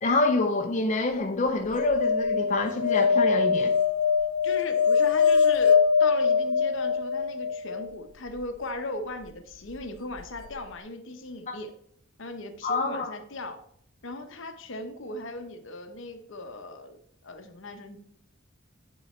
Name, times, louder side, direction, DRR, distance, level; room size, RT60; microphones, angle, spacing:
voice 1, 0.0-3.7 11.5-11.6 12.6-13.1, left 2 dB, 35° left, 2 dB, 0.7 m, -26 dB
sound 1, 1.7-7.9 10.2-10.3 10.5-10.6, left 6 dB, 80° left, 0.5 m, -23 dB
voice 2, 4.4-11.7 12.2-13.6 14.0-17.0 17.2-18.0, left 2 dB, 65° left, 7 dB, 0.9 m, -37 dB
10.5 x 3.9 x 4.4 m, 0.66 s
head